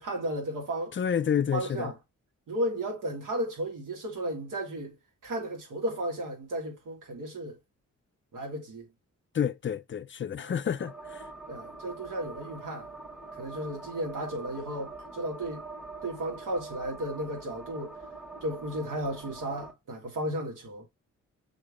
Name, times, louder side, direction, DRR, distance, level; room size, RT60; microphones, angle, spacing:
voice 1, 0.0-1.0 1.5-2.0 2.5-5.0 5.2-7.6 8.3-8.9 10.4-10.5 11.5-12.9 13.4-15.7 16.0-18.0 18.4-20.9, right 1 dB, 75° right, 2.0 m, -34 dB
voice 2, 1.0-1.9 9.3-11.2, left 8 dB, 40° left, 0.4 m, -29 dB
sound 1, 10.8-19.7, right 3 dB, ahead, 1.1 m, -44 dB
6.3 x 3.4 x 2.4 m
cardioid pair, 55°, 31 cm